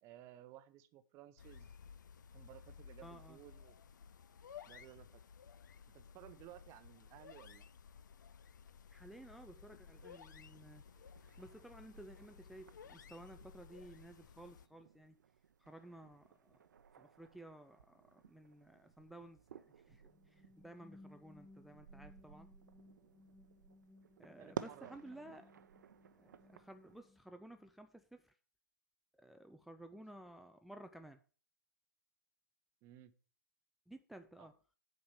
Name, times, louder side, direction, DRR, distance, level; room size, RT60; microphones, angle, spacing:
voice 1, 0.0-1.7 2.3-3.8 4.7-5.2 5.9-7.7 24.2-25.4 32.8-33.1 34.4-34.5, right 13 dB, 25° right, 12 dB, 0.7 m, -57 dB
sound 1, 1.4-14.7, left 7 dB, 60° left, 0.6 m, -57 dB
voice 2, 3.0-3.4 8.9-10.8 11.4-15.2 15.6-16.6 17.0-22.5 24.2-25.5 26.2-28.3 29.1-31.2 33.9-34.5, right 1 dB, ahead, 7 dB, 0.3 m, -55 dB
sound 2, 9.9-27.0, right 8 dB, 60° right, 0.7 m, -55 dB
sound 3, 19.9-27.7, left 2 dB, 15° left, 1.3 m, -63 dB
8.6 x 5.0 x 7.1 m, 0.40 s
figure-of-eight pair, 120°, 11 cm